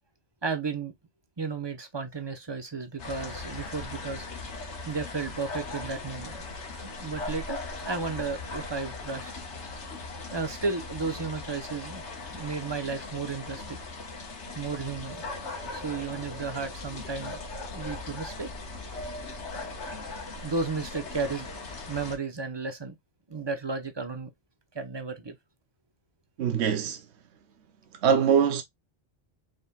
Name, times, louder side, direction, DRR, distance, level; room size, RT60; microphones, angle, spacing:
voice 1, 0.4-0.9 1.4-4.2 4.8-6.3 6.8-9.3 10.3-12.0 12.3-13.8 14.5-15.2 15.7-18.5 20.4-21.5 21.9-22.9 23.3-24.3 24.7-25.3, right 4 dB, 25° right, 0.9 m, -33 dB
sound 1, 3.0-22.1, left 3 dB, 75° left, 1.6 m, -39 dB
voice 2, 26.4-27.0 28.0-28.6, right 7 dB, 70° right, 1.0 m, -23 dB
5.1 x 4.1 x 2.3 m
omnidirectional pair, 1.2 m